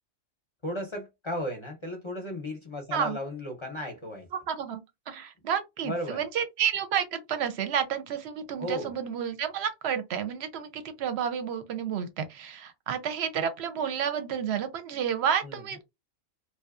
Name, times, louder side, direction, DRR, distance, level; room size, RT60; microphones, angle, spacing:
voice 1, 0.6-4.3 5.8-6.2 8.6-8.9 15.4-15.6, left 1 dB, 30° left, 0.5 m, -35 dB
voice 2, 4.3-4.8 5.1-15.8, right 8 dB, 65° right, 0.8 m, -30 dB
2.7 x 2.1 x 2.3 m
omnidirectional pair, 1.3 m